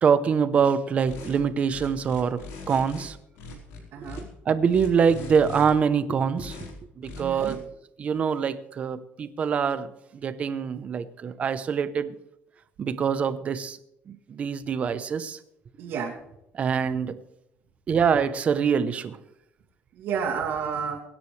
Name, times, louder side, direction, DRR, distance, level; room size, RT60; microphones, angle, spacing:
voice 1, 0.0-2.4 2.7-3.2 4.2-6.7 7.0-7.6 8.0-9.9 10.1-12.1 12.8-13.8 14.1-15.4 16.5-17.2 17.9-19.2, right 6 dB, 30° right, 12 dB, 0.9 m, -24 dB
sound 1, 1.0-1.4 1.7-3.0 3.3-4.2 4.7-5.7 6.3-6.7 7.0-7.5, left 4 dB, 90° left, 4.4 m, -40 dB
voice 2, 3.9-4.3 7.1-7.6 15.8-16.1 19.9-21.0, right 6 dB, 55° right, -5 dB, 2.8 m, -30 dB
23.5 x 10.0 x 3.3 m, 0.80 s
cardioid pair, 165°, 4 cm